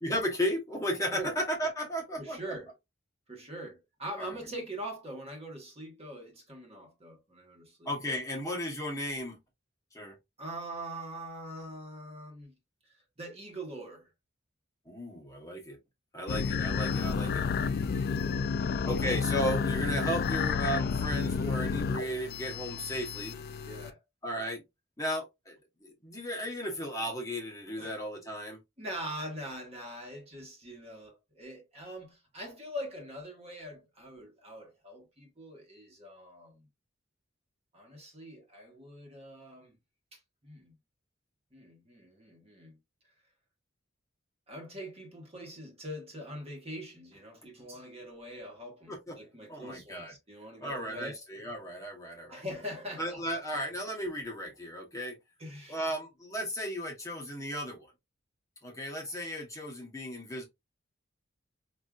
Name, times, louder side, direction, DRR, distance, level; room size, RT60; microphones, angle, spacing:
voice 1, 0.0-2.4 4.2-4.3 7.9-9.4 9.9-10.1 14.9-15.8 16.1-17.5 18.8-23.4 24.2-24.6 25.0-25.5 25.8-28.6 48.9-49.2 49.5-50.1 50.6-52.4 53.0-55.1 55.7-57.9 58.6-60.4, equal, 15° left, 0.9 m, -35 dB
voice 2, 2.2-2.7 3.3-7.9 10.4-12.5 12.8-14.1 17.8-18.9 23.5-24.0 27.8-28.0 28.8-36.7 37.7-39.7 40.1-40.7 41.5-42.8 44.5-51.2 52.3-53.2 55.4-55.8, equal, 30° right, 1.2 m, -43 dB
sound 1, 16.3-23.9, left 5 dB, 50° left, 0.3 m, -31 dB
4.7 x 2.6 x 2.3 m
head